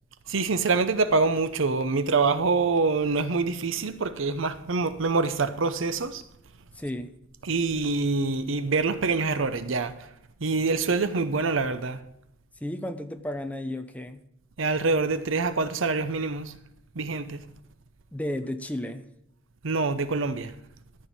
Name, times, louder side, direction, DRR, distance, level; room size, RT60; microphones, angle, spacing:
voice 1, 0.3-6.2 7.4-9.9 10.4-12.0 14.6-16.5 17.0-17.4 19.6-20.5, right 4 dB, 65° right, 0.7 m, -25 dB
voice 2, 6.7-7.2 12.6-14.2 18.1-19.1, left 1 dB, 5° left, 0.7 m, -33 dB
13.5 x 4.6 x 8.4 m
head